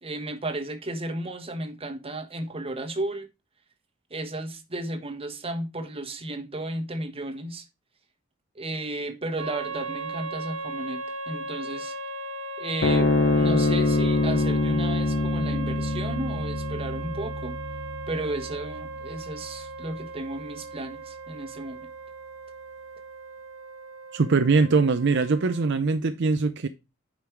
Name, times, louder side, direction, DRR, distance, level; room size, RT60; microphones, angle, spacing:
voice 1, 0.0-3.3 4.1-7.6 8.5-12.0 12.6-17.6 18.1-21.9, right 2 dB, 30° right, 1.3 m, -34 dB
sound 1, 9.4-25.7, right 3 dB, 75° right, 1.1 m, -38 dB
sound 2, 12.8-19.5, left 2 dB, 55° left, 0.8 m, -25 dB
voice 2, 24.1-26.7, right 4 dB, 60° right, 0.5 m, -22 dB
8.5 x 5.3 x 4.5 m
head